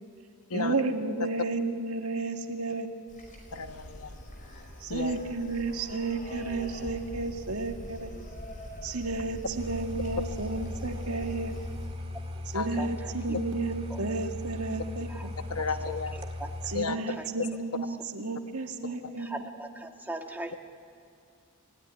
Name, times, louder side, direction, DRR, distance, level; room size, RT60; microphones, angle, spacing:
voice 1, 0.5-2.9 4.8-8.1 8.8-11.5 12.5-15.1 16.7-19.4, right 3 dB, 70° right, 4 dB, 1.9 m, -32 dB
sound 1, 3.1-11.9, equal, 40° left, 5.2 m, -43 dB
voice 2, 3.5-4.2 4.6-5.1 12.5-12.8 15.5-16.1 16.7-17.0 17.4-17.5, left 4 dB, 70° left, 8 dB, 1.1 m, -33 dB
sound 2, 9.6-16.8, left 2 dB, 25° right, 1.9 m, -38 dB
voice 3, 16.9-17.3 19.2-20.5, right 1 dB, 10° right, 2 dB, 1.6 m, -39 dB
29.0 x 17.0 x 9.9 m, 2.5 s
head